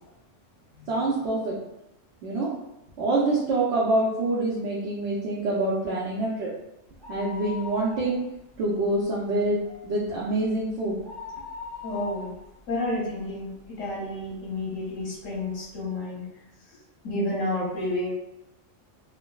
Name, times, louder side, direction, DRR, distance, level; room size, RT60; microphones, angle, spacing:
voice 1, 0.9-1.6 2.2-2.5 3.0-6.5 7.1-8.2 8.6-9.6 9.8-11.0, right 2 dB, 70° right, -6 dB, 0.9 m, -26 dB
sound 1, 6.9-8.5 8.8-8.9 9.4-13.8 14.3-14.4 15.2-15.3 15.5-15.6, left 4 dB, 5° left, 0.7 m, -40 dB
voice 2, 11.8-12.3 12.7-16.3 17.0-18.1, left 1 dB, 80° left, -5 dB, 1.2 m, -30 dB
3.4 x 2.2 x 2.2 m, 0.87 s
omnidirectional pair, 1.3 m